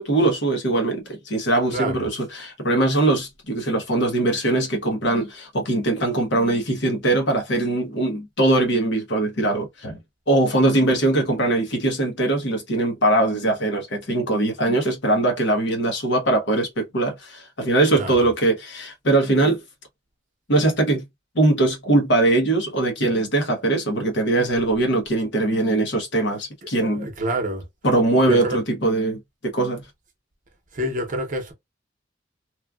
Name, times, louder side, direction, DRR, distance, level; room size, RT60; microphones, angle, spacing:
voice 1, 0.0-10.0 10.3-19.6 20.5-21.0 21.3-27.1 27.8-29.8, right 2 dB, 65° left, 1.0 m, -21 dB
voice 2, 1.7-2.1 17.9-18.3 26.6-27.7 28.2-28.6 30.7-31.5, right 1 dB, 45° right, 0.9 m, -28 dB
3.1 x 2.4 x 2.3 m
head